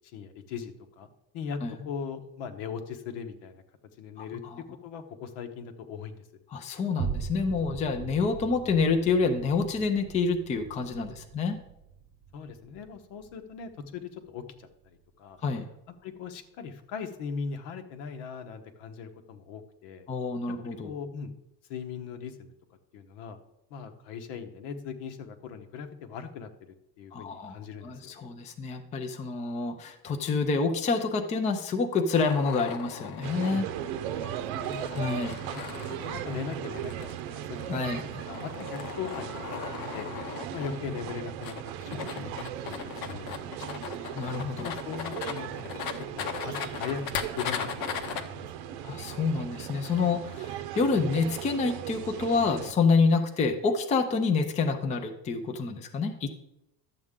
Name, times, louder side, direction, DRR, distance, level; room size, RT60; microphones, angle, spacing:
voice 1, 0.1-1.1 1.3-1.6 1.8-3.6 4.0-6.2 12.3-15.4 16.0-20.0 20.8-21.3 21.7-22.5 22.9-23.4 23.7-28.1 34.5-35.0 35.4-37.6 38.0-39.4 39.9-40.1 40.5-42.3 42.6-44.2 44.6-45.8 46.1-48.8, left 6 dB, 75° left, 7 dB, 1.2 m, -40 dB
voice 2, 4.2-4.6 6.5-11.6 15.4-15.7 20.1-20.9 27.1-27.5 27.8-33.7 34.9-35.4 37.7-38.2 44.1-44.7 48.8-56.4, left 4 dB, 15° left, 5 dB, 0.4 m, -27 dB
sound 1, 7.0-15.5 16.0-16.1, right 6 dB, 30° right, 0.5 m, -41 dB
sound 2, 32.2-48.2, left 7 dB, 55° left, 0.9 m, -38 dB
sound 3, 33.2-52.7, right 11 dB, 80° right, 0.8 m, -38 dB
11.5 x 7.7 x 3.7 m, 0.85 s
cardioid pair, 170°, 42 cm